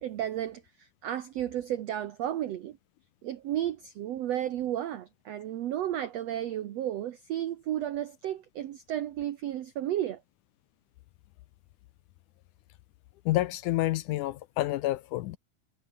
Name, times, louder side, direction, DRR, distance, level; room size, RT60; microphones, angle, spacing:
voice 1, 0.0-2.8 3.2-10.2, right 11 dB, 65° right, 1.7 m, -33 dB
voice 2, 13.3-15.4, left 16 dB, 80° left, 1.9 m, -28 dB
omnidirectional pair, 4.1 m